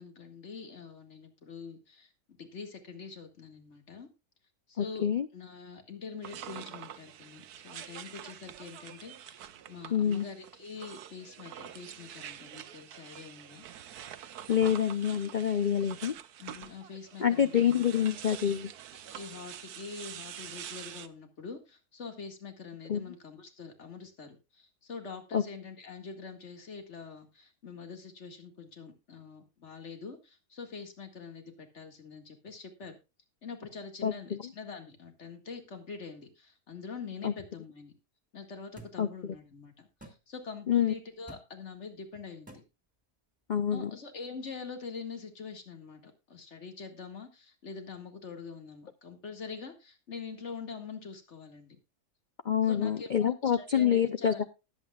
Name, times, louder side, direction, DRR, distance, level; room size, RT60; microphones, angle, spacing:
voice 1, 0.0-2.1 2.4-4.1 4.7-5.1 5.3-13.7 16.4-18.1 19.1-33.0 33.4-37.9 38.3-42.6 43.7-51.8 52.6-54.4, left 5 dB, 50° left, 6 dB, 2.2 m, -44 dB
voice 2, 4.8-5.3 9.9-10.3 14.5-16.1 17.2-18.7 22.9-23.0 25.3-25.4 34.0-34.4 37.2-37.3 39.0-39.1 40.7-40.9 43.5-43.9 52.5-54.3, left 8 dB, 65° left, 11 dB, 0.4 m, -27 dB
sound 1, 6.2-21.1, right 10 dB, 85° right, 1.3 m, -46 dB
sound 2, 38.8-38.9 40.0-40.2 41.3-41.4 42.5-42.6, right 2 dB, 5° right, 2.2 m, -48 dB
19.5 x 8.2 x 2.4 m, 0.27 s
omnidirectional pair, 1.6 m